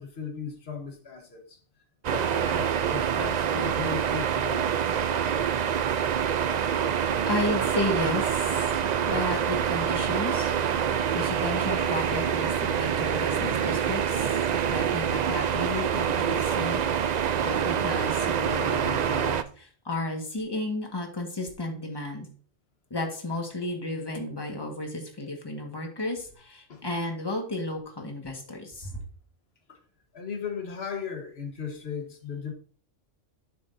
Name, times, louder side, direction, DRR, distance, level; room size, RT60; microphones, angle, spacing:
voice 1, 0.0-1.6 2.1-4.7 5.9-6.1 26.7-26.8 29.7-29.8 30.1-32.5, left 6 dB, 50° left, 1.6 m, -37 dB
sound 1, 2.0-19.4, right 8 dB, 85° right, 0.3 m, -26 dB
voice 2, 7.3-8.5 9.0-10.5 11.1-14.3 14.7-16.8 17.4-22.3 22.9-29.0, left 2 dB, 20° left, 1.6 m, -33 dB
11.0 x 6.4 x 2.7 m
omnidirectional pair, 1.4 m